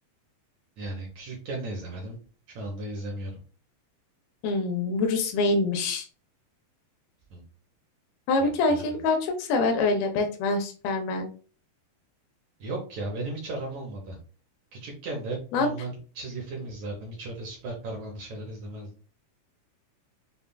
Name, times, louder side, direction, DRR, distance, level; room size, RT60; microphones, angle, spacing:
voice 1, 0.8-2.2 2.5-3.3 7.3-7.4 8.4-8.9 12.6-14.2 14.7-18.9, right 2 dB, 70° right, -1 dB, 1.9 m, -36 dB
voice 2, 4.4-6.1 8.3-11.3 15.5-15.7, left 3 dB, 85° left, 4 dB, 2.6 m, -25 dB
6.9 x 2.4 x 2.2 m, 0.39 s
omnidirectional pair, 4.2 m